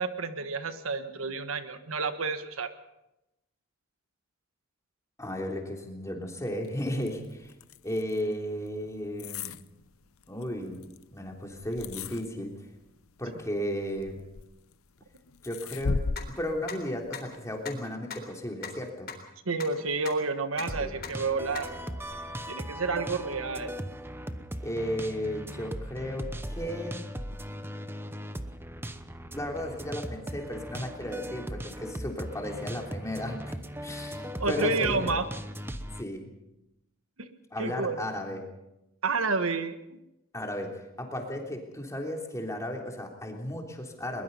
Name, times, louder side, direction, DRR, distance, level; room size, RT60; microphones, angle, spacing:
voice 1, 0.0-2.7 19.4-22.2 22.5-23.8 34.4-35.3 37.2-37.3 37.6-38.0 39.0-40.0, right 4 dB, 80° right, 9 dB, 1.4 m, -30 dB
voice 2, 5.2-7.5 7.8-9.5 10.3-12.5 13.2-14.2 15.4-16.0 16.4-19.1 20.8-20.9 24.6-27.1 29.3-33.6 33.8-35.1 36.0-36.3 37.5-38.4 40.3-40.7 41.0-44.2, equal, 15° left, 1 dB, 3.4 m, -34 dB
sound 1, 6.5-17.9, left 4 dB, 85° left, 0.7 m, -39 dB
sound 2, 16.2-16.3 16.7-16.8 17.1-17.2 17.7-17.8 18.1-18.2 18.6-18.7 19.1-19.2 19.6-19.7 20.1-20.2 20.6-20.7 21.0-21.1 21.5-21.6 22.0-22.1, left 7 dB, 50° left, 3.7 m, -37 dB
sound 3, 20.7-36.0, equal, 10° right, 0.9 m, -38 dB
22.0 x 21.5 x 5.5 m, 0.90 s
head